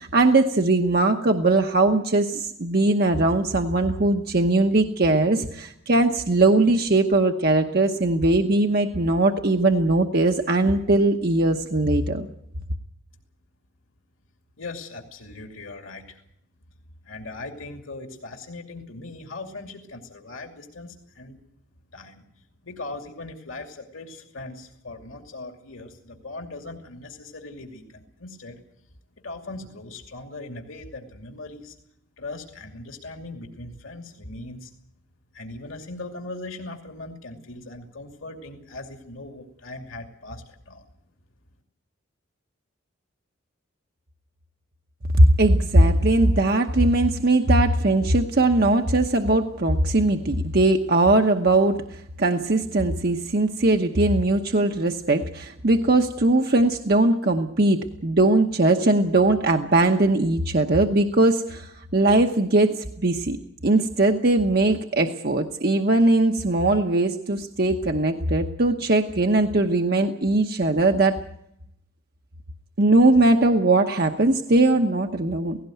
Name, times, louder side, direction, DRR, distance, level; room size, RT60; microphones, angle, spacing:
voice 1, 0.0-12.3 45.1-63.4 63.6-71.2 72.8-75.6, right 2 dB, 50° right, 4 dB, 1.0 m, -20 dB
voice 2, 14.6-16.2 17.0-21.4 21.9-22.3 22.6-28.6 29.2-31.8 32.2-34.7 35.3-40.8, left 2 dB, 85° left, 4 dB, 2.6 m, -39 dB
17.0 x 17.0 x 9.3 m, 0.77 s
head